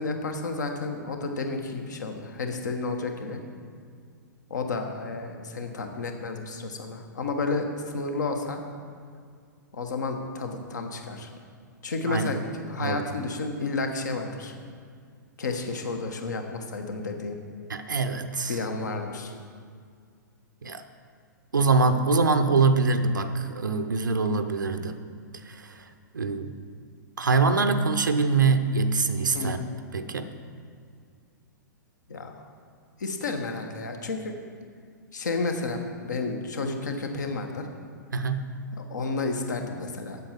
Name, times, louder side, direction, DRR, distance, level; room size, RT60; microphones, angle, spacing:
voice 1, 0.0-3.4 4.5-7.7 7.9-8.6 9.7-11.3 11.8-14.5 15.4-17.4 18.5-19.3 29.3-29.8 32.1-32.4 33.0-34.4 35.1-37.7 38.8-40.2, left 3 dB, 60° left, 5 dB, 1.2 m, -31 dB
voice 2, 12.1-12.4 12.8-13.1 17.7-18.6 20.6-20.9 21.5-25.0 25.4-25.9 26.1-26.6 27.2-29.6 29.9-30.3 38.1-38.5, right 4 dB, 70° right, 8 dB, 0.6 m, -24 dB
8.2 x 7.8 x 5.8 m, 2.1 s
figure-of-eight pair, 110°, 11 cm